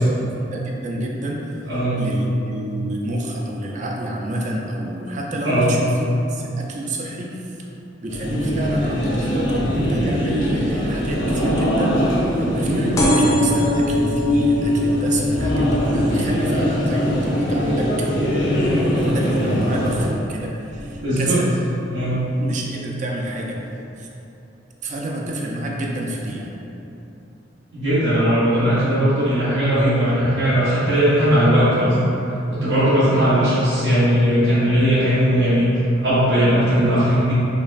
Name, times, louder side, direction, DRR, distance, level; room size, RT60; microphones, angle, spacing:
voice 1, 0.0-1.6 2.0-7.6 8.0-18.1 19.0-21.5 22.4-23.6 24.0-24.1 24.8-26.5, right 1 dB, 40° right, -1 dB, 0.4 m, -28 dB
voice 2, 1.7-2.0 5.4-5.7 21.0-21.4 21.9-22.2 27.7-32.1 32.5-37.3, equal, 65° right, -13 dB, 0.9 m, -18 dB
sound 1, 8.1-20.1, equal, 90° left, 0.7 m, -22 dB
sound 2, 13.0-20.2 20.7-21.1 22.0-22.1 22.3-22.4 22.6-22.7, left 1 dB, 20° left, 0.4 m, -23 dB
5.4 x 2.0 x 2.5 m, 2.9 s
head